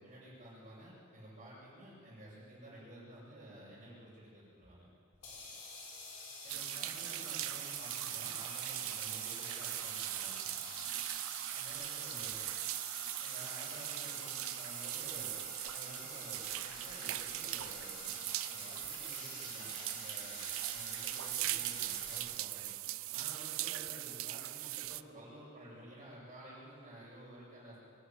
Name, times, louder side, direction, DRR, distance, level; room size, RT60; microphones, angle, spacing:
voice 1, 0.0-4.8 6.4-10.7 11.5-12.4 13.2-15.4 15.7-18.2 18.5-20.4 20.7-22.7 23.1-27.8, right 1 dB, 30° right, -12 dB, 7.3 m, -52 dB
sound 1, 5.1-22.2, left 3 dB, 75° left, 5.7 m, -49 dB
sound 2, 6.5-25.0, right 17 dB, 65° right, 0.5 m, -40 dB
24.5 x 11.5 x 9.6 m, 2.3 s
head